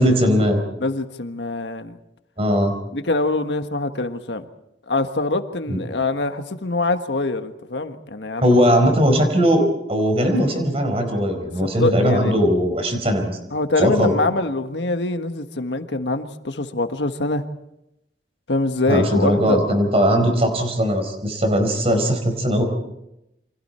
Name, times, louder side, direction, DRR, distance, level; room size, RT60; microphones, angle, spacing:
voice 1, 0.0-0.6 2.4-2.7 5.7-5.8 8.4-9.6 9.9-13.4 13.8-14.1 18.9-22.6, equal, 35° right, 5 dB, 4.5 m, -19 dB
voice 2, 0.8-1.9 2.9-4.4 4.9-8.6 11.6-12.4 13.5-17.4 18.5-19.6, left 2 dB, 80° left, 8 dB, 1.5 m, -24 dB
29.0 x 25.5 x 4.4 m, 0.85 s
head